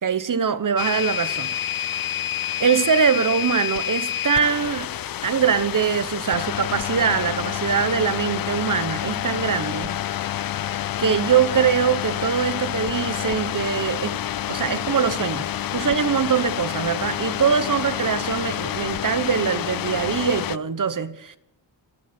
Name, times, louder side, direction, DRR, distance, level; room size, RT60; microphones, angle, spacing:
voice 1, 0.0-1.5 1.8-1.9 2.6-4.9 5.2-10.0 11.0-14.2 14.5-21.4, right 7 dB, 40° right, 1.0 m, -23 dB
sound 1, 0.8-20.6, left 11 dB, 50° left, 0.5 m, -28 dB
27.0 x 11.5 x 4.4 m
cardioid pair, 90°, 47 cm